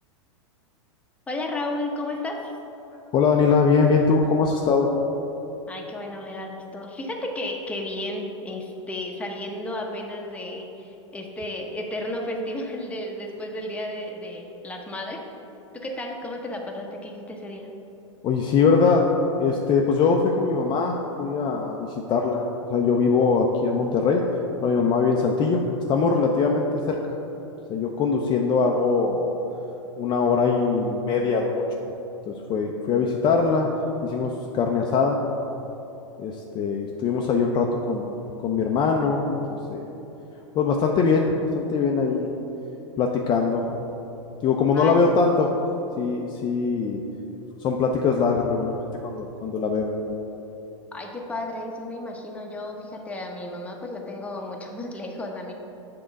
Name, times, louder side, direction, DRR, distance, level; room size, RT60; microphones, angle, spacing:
voice 1, 1.3-2.5 5.7-15.2 15.7-17.7 44.7-45.0 50.9-55.5, left 1 dB, 10° left, 0 dB, 0.9 m, -33 dB
voice 2, 3.1-4.9 18.2-19.1 19.4-22.5 22.7-24.2 24.6-25.6 25.9-27.2 27.7-29.3 30.0-31.6 32.3-33.7 34.0-35.2 36.2-38.1 38.4-39.9 40.6-41.3 41.5-42.3 43.0-43.7 44.4-45.5 46.0-47.0 47.6-49.9, left 5 dB, 30° left, 0 dB, 0.5 m, -22 dB
7.1 x 3.8 x 6.3 m, 3.0 s
hypercardioid pair, 115°, 16 cm